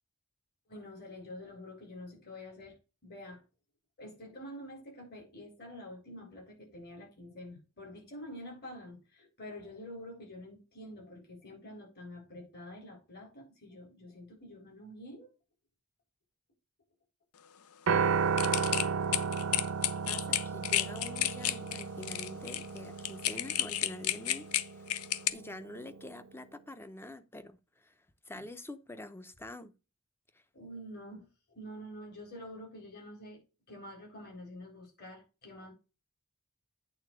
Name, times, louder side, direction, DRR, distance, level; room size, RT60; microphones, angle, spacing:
voice 1, 0.7-2.8 3.0-3.4 4.0-15.3 30.5-33.4 33.7-35.7, left 1 dB, 50° left, 4.2 m, -47 dB
Piano, 17.9-26.1, right 6 dB, 70° right, 0.6 m, -34 dB
sound 1, 18.4-25.3, left 12 dB, 85° left, 0.6 m, -31 dB
voice 2, 19.9-25.0 25.3-29.7 30.3-30.4, left 1 dB, 10° left, 0.6 m, -46 dB
8.7 x 3.7 x 6.1 m
head